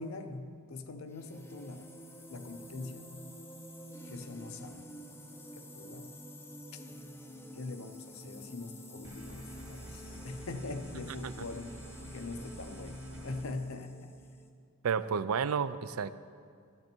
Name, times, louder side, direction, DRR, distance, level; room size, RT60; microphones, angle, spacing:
voice 1, 0.0-1.9 2.3-3.3 4.0-4.9 5.5-6.2 6.7-6.8 7.5-11.8 12.1-14.2, left 3 dB, 70° left, 8 dB, 0.7 m, -43 dB
sound 1, 1.1-14.5, equal, 10° left, 0.6 m, -49 dB
sound 2, 9.0-13.4, right 2 dB, 55° right, 1.3 m, -48 dB
voice 2, 14.8-16.2, right 6 dB, 75° right, 14 dB, 0.4 m, -31 dB
12.0 x 11.0 x 4.5 m, 2.2 s
head